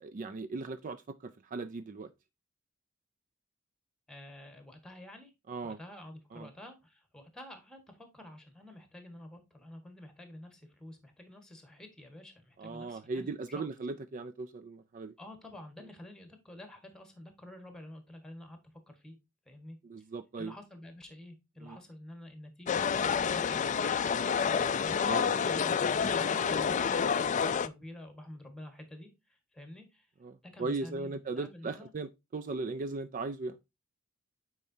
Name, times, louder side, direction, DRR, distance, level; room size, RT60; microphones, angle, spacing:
voice 1, 0.0-2.1 5.5-5.8 6.3-6.5 12.6-15.1 19.8-20.5 21.6-21.8 25.1-25.3 30.2-33.6, right 3 dB, 40° right, 0.4 m, -38 dB
voice 2, 4.1-5.3 5.6-13.7 15.2-18.6 18.9-19.2 19.4-19.8 20.4-24.0 24.4-25.0 25.4-27.0 27.3-30.1 30.5-31.9, left 1 dB, 5° left, 1.5 m, -49 dB
sound 1, 22.7-27.7, left 6 dB, 35° left, 0.4 m, -29 dB
8.7 x 4.6 x 2.7 m
head